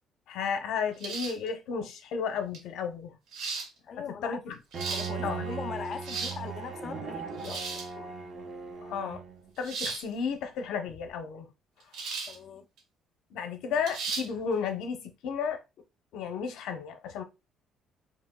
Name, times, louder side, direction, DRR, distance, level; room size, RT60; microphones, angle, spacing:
voice 1, 0.3-3.2 4.2-4.6 5.2-5.4 8.8-9.2 9.6-11.5 13.3-15.6 16.1-17.2, left 6 dB, 70° left, 0.7 m, -33 dB
sound 1, 1.0-1.5 2.5-2.6 3.3-3.7 4.5-5.1 5.8-6.4 7.4-7.9 9.6-10.0 11.9-12.4 12.8-12.9 13.9-14.3, right 4 dB, 75° right, 1.3 m, -35 dB
voice 2, 3.9-4.4 4.9-8.1 12.3-12.7, left 7 dB, 40° left, 0.4 m, -41 dB
Bowed string instrument, 4.7-9.5, right 5 dB, 35° right, 0.8 m, -38 dB
5.0 x 3.1 x 2.2 m
cardioid pair, 170°, 0 cm